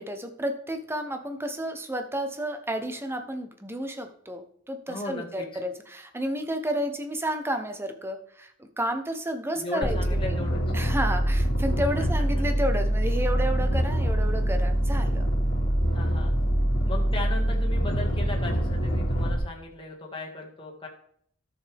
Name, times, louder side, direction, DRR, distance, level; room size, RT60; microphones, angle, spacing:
voice 1, 0.0-10.4 10.7-15.3, equal, 10° right, 6 dB, 0.8 m, -31 dB
voice 2, 4.9-5.6 9.5-10.6 12.0-12.4 15.9-16.3 16.9-20.9, left 2 dB, 25° left, -1 dB, 1.9 m, -37 dB
sound 1, 9.8-19.4, right 1 dB, 65° left, 1.9 m, -24 dB
12.5 x 6.8 x 3.5 m, 0.64 s
head